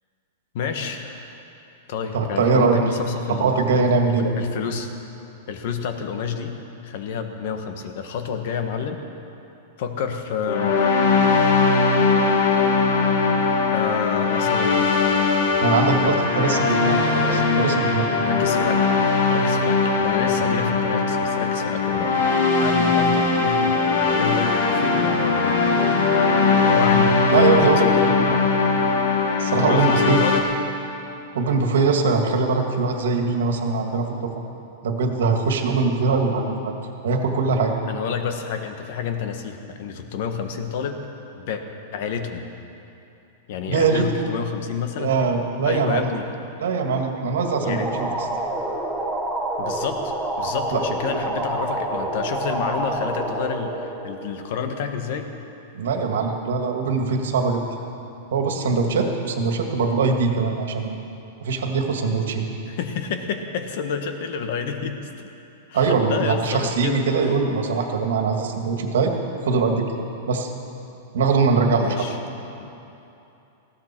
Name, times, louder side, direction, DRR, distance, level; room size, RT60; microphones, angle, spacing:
voice 1, 0.5-1.4 1.9-3.8 4.3-4.9 5.5-6.5 6.8-9.0 9.8-11.0 13.7-15.6 16.0-16.8 17.3-17.5 18.2-18.9 19.3-25.6 26.6-28.4 29.5-30.4 37.8-41.0 41.3-41.6 41.9-42.4 43.5-45.1 45.6-46.3 47.6-47.9 49.6-55.3 62.7-65.0 65.7-67.0 71.8-72.2 72.6-72.7, left 6 dB, 45° left, 6 dB, 1.3 m, -29 dB
voice 2, 2.1-2.8 3.3-4.3 15.6-18.1 27.3-27.9 29.4-30.2 31.3-34.3 34.8-36.8 37.0-37.8 43.7-44.3 45.0-46.1 46.6-48.1 50.7-51.2 55.7-57.6 58.3-61.0 61.4-62.5 65.7-69.1 69.4-69.9 70.3-70.5 71.1-72.1, right 4 dB, 85° right, 3 dB, 2.0 m, -22 dB
sound 1, 10.5-30.4, left 4 dB, 85° left, 2.6 m, -20 dB
sound 2, 47.4-54.8, right 2 dB, 5° right, 1.1 m, -28 dB
19.5 x 16.0 x 4.5 m, 2.8 s
supercardioid pair, 175°, 0 cm